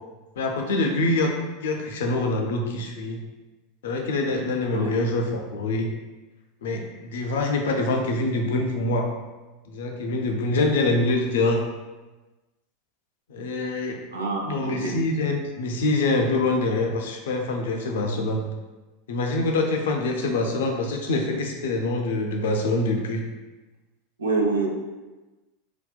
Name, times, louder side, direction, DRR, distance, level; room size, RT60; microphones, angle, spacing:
voice 1, 0.4-1.3 1.6-3.2 3.8-5.9 6.6-9.1 9.7-11.6 13.3-14.0 14.5-18.5 19.1-23.2, left 2 dB, 70° left, 2 dB, 0.4 m, -25 dB
voice 2, 14.1-14.9 24.2-24.7, right 3 dB, 80° right, -1 dB, 0.4 m, -26 dB
2.7 x 2.1 x 2.3 m, 1.2 s
figure-of-eight pair, 85°, 0 cm